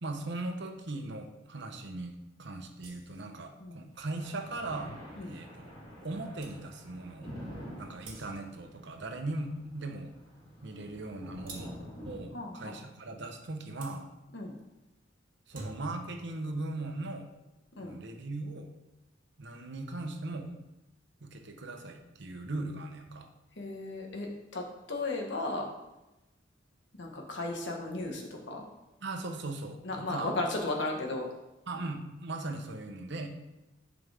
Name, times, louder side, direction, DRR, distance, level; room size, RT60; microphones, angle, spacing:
voice 1, 0.0-5.0 5.2-5.7 6.0-7.4 7.8-10.1 10.6-11.7 12.0-14.1 15.5-17.3 17.8-18.7 19.4-20.6 21.2-23.3 29.0-30.3 31.7-33.3, right 2 dB, 65° right, 4 dB, 1.0 m, -39 dB
sound 1, 2.8-3.3 6.0-6.1 6.4-6.6 8.0-8.6 11.5-11.9 13.8-14.0 15.3-16.1, right 2 dB, 45° right, 1.8 m, -47 dB
sound 2, 3.9-12.2, equal, 30° left, 2.7 m, -48 dB
voice 2, 12.3-12.8 14.3-14.5 17.8-18.0 23.6-25.7 27.0-28.6 29.8-31.3, left 2 dB, 65° left, 0 dB, 1.4 m, -35 dB
11.0 x 4.9 x 3.5 m, 0.98 s
head